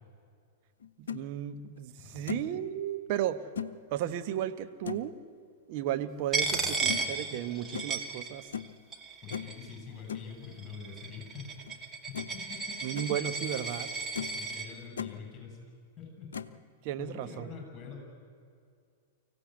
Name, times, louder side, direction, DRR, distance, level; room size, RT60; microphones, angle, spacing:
sound 1, 0.8-1.2 1.8-1.9 2.3-2.6 3.5-3.7 4.8-5.1 6.9-7.0 7.7-7.9 8.5-8.8 9.3-9.6 10.1-10.3 11.7-11.8 12.1-12.4 12.7-13.1 13.7-13.8 14.1-14.4 14.7-15.1 16.3-16.6, left 8 dB, 70° left, 0.8 m, -38 dB
voice 1, 1.0-3.4 3.9-5.1 5.7-8.5 12.8-13.9 16.8-17.5, right 11 dB, 45° right, 9 dB, 1.1 m, -34 dB
voice 2, 2.0-2.3 6.4-6.9 9.2-13.0 14.3-15.6 16.0-16.3 17.0-18.0, left 6 dB, 25° left, 2 dB, 7.7 m, -45 dB
Coin (dropping), 6.3-8.7 8.9-9.7 10.4-14.7, right 4 dB, 20° right, 2.1 m, -34 dB
24.5 x 15.5 x 8.2 m, 2.3 s
figure-of-eight pair, 100°, 0 cm